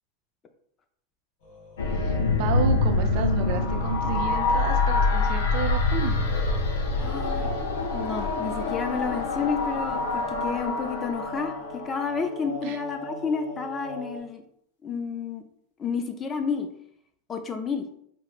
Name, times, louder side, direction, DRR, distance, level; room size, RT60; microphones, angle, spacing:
sound 1, 1.4-14.2, equal, 65° left, 1.3 m, -41 dB
sound 2, 1.8-12.2, left 3 dB, 80° left, 0.6 m, -25 dB
voice 1, 1.9-6.2 12.6-12.8, right 7 dB, 60° right, 6 dB, 0.4 m, -32 dB
voice 2, 7.0-7.5 7.9-14.4 14.8-15.4 15.8-16.7 17.3-17.9, left 5 dB, 25° left, 6 dB, 0.4 m, -30 dB
4.4 x 2.0 x 2.4 m, 0.69 s
hypercardioid pair, 110°, 0 cm